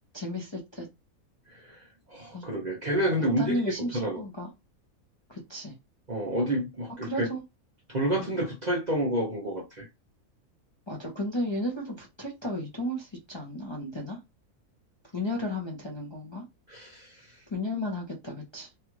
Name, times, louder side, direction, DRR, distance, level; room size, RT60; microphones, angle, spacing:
voice 1, 0.1-0.9 2.3-2.6 3.2-4.5 5.3-5.7 7.0-7.4 8.2-8.4 10.9-14.2 15.1-16.4 17.5-18.7, left 1 dB, 30° left, 0.6 m, -34 dB
voice 2, 1.5-3.6 3.9-4.2 6.1-7.3 7.9-9.9 16.7-17.4, right 1 dB, 40° right, 0.6 m, -29 dB
3.1 x 2.3 x 3.0 m
omnidirectional pair, 1.5 m